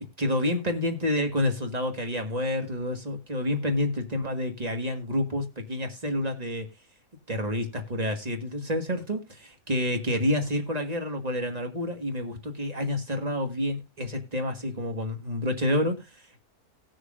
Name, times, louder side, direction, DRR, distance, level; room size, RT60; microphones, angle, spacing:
voice 1, 0.2-6.6 7.3-16.4, left 1 dB, 25° right, 1.6 m, -29 dB
19.0 x 6.4 x 2.4 m
omnidirectional pair, 1.6 m